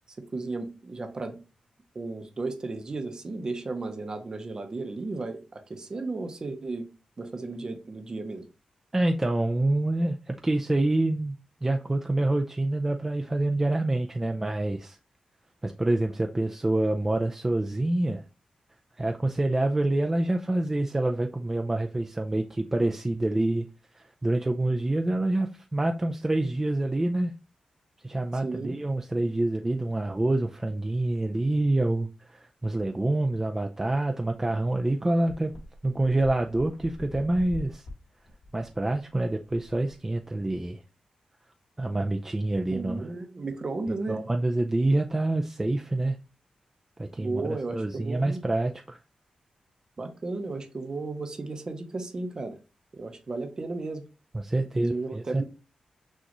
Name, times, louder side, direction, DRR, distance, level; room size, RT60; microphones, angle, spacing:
voice 1, 0.3-1.4 1.9-6.9 7.2-8.4 28.4-28.8 42.7-44.2 47.2-48.4 50.0-52.6 52.9-54.0 54.8-55.4, right 3 dB, 35° right, 0.7 m, -34 dB
voice 2, 8.9-15.0 15.6-18.2 19.0-23.7 23.9-27.3 28.0-35.5 35.8-37.9 38.5-40.8 41.8-43.1 44.1-46.2 47.0-47.4 47.7-49.0 54.3-55.4, right 2 dB, 15° right, 0.3 m, -27 dB
sound 1, 35.3-40.5, left 2 dB, 70° left, 1.6 m, -44 dB
6.3 x 2.4 x 2.9 m
wide cardioid pair, 125°, 2 cm